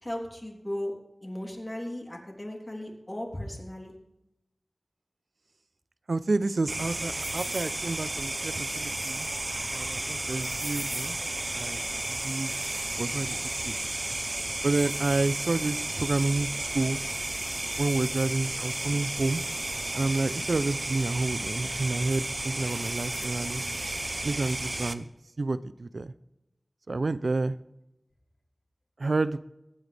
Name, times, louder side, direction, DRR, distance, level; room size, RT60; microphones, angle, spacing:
voice 1, 0.0-0.9 1.2-4.0, left 1 dB, 25° left, 0 dB, 3.4 m, -36 dB
voice 2, 6.1-9.3 9.7-11.2 11.5-12.5 13.0-13.4 13.6-13.8 14.6-17.0 17.8-19.4 19.9-23.6 24.2-25.1 25.4-26.1 26.9-27.6 29.0-29.4, right 3 dB, 80° right, 15 dB, 0.6 m, -29 dB
sound 1, 6.7-24.9, right 2 dB, 45° right, 0.8 m, -33 dB
23.0 x 9.1 x 3.4 m, 0.91 s
wide cardioid pair, 65°, 0 cm